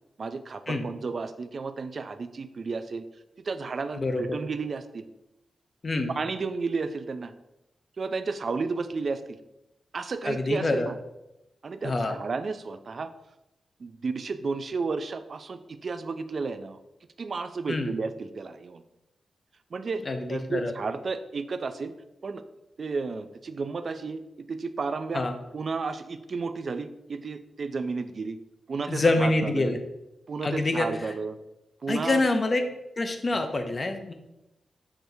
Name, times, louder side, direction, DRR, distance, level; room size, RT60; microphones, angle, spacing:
voice 1, 0.2-3.0 3.4-5.0 6.2-7.3 8.0-9.4 9.9-11.0 11.6-13.1 13.8-16.8 17.2-18.8 19.7-20.0 20.3-21.9 22.2-22.4 22.8-25.2 25.5-28.4 28.7-29.8 30.3-31.4 31.8-32.2 33.3-33.4, right 4 dB, 55° right, 11 dB, 0.3 m, -32 dB
voice 2, 3.9-4.4 5.8-6.1 10.2-10.9 11.8-12.1 17.7-17.9 20.1-20.7 25.1-25.3 28.9-29.8 30.4-30.9 31.9-32.6 33.0-34.1, left 2 dB, 40° left, 6 dB, 0.5 m, -26 dB
5.9 x 3.4 x 2.6 m, 0.91 s
wide cardioid pair, 95°, 0 cm